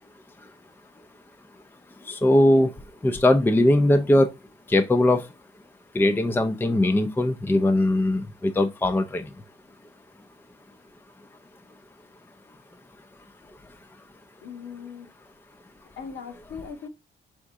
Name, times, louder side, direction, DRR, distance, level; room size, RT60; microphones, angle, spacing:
voice 1, 2.0-2.7 3.0-4.3 4.7-5.3 5.9-9.3, left 1 dB, 10° left, 0.5 m, -20 dB
voice 2, 14.4-15.1 16.0-16.9, left 6 dB, 65° left, 1.1 m, -39 dB
4.8 x 3.5 x 2.6 m
cardioid pair, 90°, 20 cm